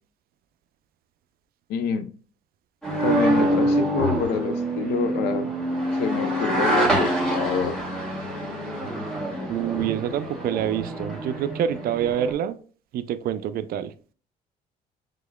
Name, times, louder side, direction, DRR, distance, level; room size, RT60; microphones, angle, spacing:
voice 1, 1.7-2.1 3.0-5.5 6.0-7.8, left 6 dB, 80° left, 0.6 m, -27 dB
sound 1, 2.8-12.3, right 1 dB, 5° left, 1.7 m, -25 dB
voice 2, 9.5-12.6 12.9-13.9, right 10 dB, 65° right, 0.4 m, -26 dB
5.3 x 3.7 x 2.2 m
cardioid pair, 110°, 17 cm